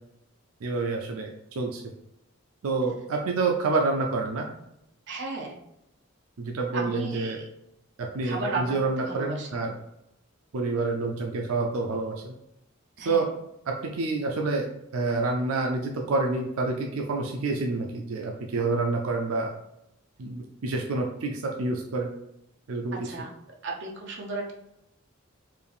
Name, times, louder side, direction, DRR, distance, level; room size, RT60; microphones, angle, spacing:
voice 1, 0.6-1.8 2.6-4.5 6.4-7.4 8.0-9.7 10.5-12.3 13.0-13.3 13.7-14.7 14.9-19.5 20.2-22.1 22.7-23.1, right 3 dB, 85° right, 1 dB, 0.5 m, -28 dB
voice 2, 5.1-5.5 6.7-7.4 8.2-9.7 13.0-13.3 23.0-23.3 23.6-24.5, right 3 dB, 55° right, 0 dB, 0.8 m, -34 dB
4.6 x 2.5 x 3.4 m, 0.82 s
head